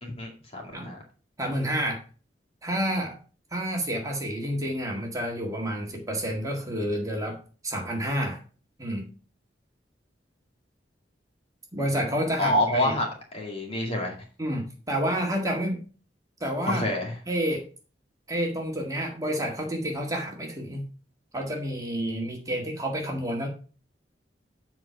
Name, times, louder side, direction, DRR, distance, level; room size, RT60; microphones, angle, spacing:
voice 1, 0.0-1.0 12.4-14.2 16.7-17.1, left 1 dB, 35° left, 0 dB, 2.3 m, -27 dB
voice 2, 1.4-2.0 2.6-3.2 3.5-7.4 7.6-8.4 8.8-9.1 11.7-12.9 14.4-15.8 16.4-16.9 17.3-17.7 18.3-20.8 21.3-23.5, equal, 20° right, 1 dB, 1.8 m, -29 dB
7.7 x 4.6 x 5.7 m, 0.37 s
head